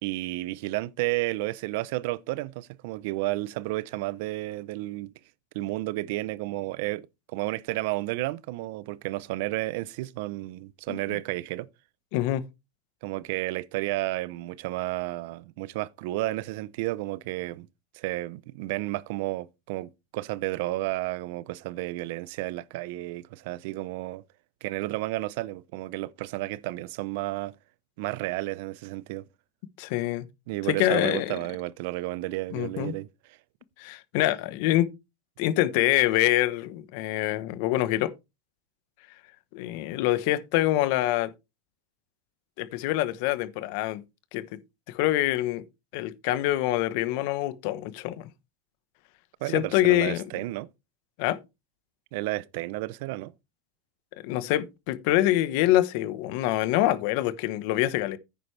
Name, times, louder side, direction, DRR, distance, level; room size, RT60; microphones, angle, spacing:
voice 1, 0.0-5.1 5.5-7.1 7.3-11.7 13.0-17.7 17.9-24.2 24.6-27.5 28.0-29.3 30.5-33.4 49.4-50.7 52.1-53.3, right 18 dB, 65° right, 0.7 m, -32 dB
voice 2, 12.1-12.4 29.8-30.2 30.7-31.4 32.5-32.9 33.8-34.9 35.4-38.1 39.5-41.3 42.6-44.0 44.3-44.4 44.9-45.6 45.9-48.3 49.5-50.2 51.2-51.4 54.2-58.2, left 15 dB, 60° left, 1.1 m, -25 dB
10.5 x 9.2 x 3.3 m
supercardioid pair, 135°, 0 cm